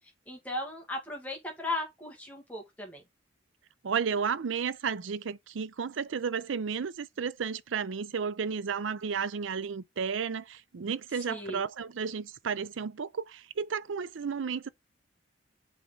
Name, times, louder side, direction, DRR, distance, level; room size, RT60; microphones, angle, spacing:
voice 1, 0.3-3.0 11.3-11.6, left 2 dB, 10° left, 2.0 m, -36 dB
voice 2, 3.8-14.7, right 6 dB, 80° right, 0.5 m, -33 dB
7.5 x 4.1 x 3.8 m
head